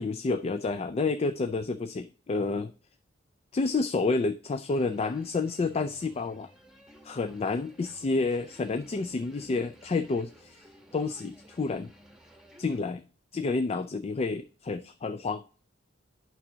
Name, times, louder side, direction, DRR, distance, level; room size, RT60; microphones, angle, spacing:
voice 1, 0.0-2.7 3.5-6.5 7.0-10.7 10.9-11.9 12.6-13.0 13.3-15.4, left 3 dB, 35° left, 11 dB, 0.3 m, -29 dB
sound 1, 4.7-12.8, equal, 5° right, 1.1 m, -56 dB
9.3 x 6.1 x 2.7 m, 0.39 s
head